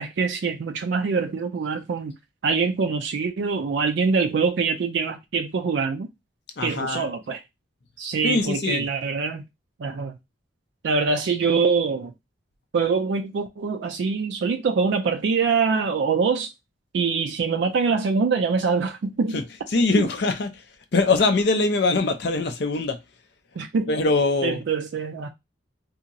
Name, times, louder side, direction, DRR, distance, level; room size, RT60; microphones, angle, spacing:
voice 1, 0.0-2.1 2.4-6.1 6.6-7.4 8.0-9.4 9.8-10.1 10.8-12.1 12.7-16.5 16.9-19.4 23.6-23.9 24.4-25.3, right 5 dB, 60° right, 0.3 m, -24 dB
voice 2, 6.6-7.1 8.2-8.8 19.3-19.4 19.7-20.6 20.9-23.0 23.9-24.6, left 3 dB, 55° left, 0.5 m, -22 dB
2.8 x 2.7 x 2.6 m
head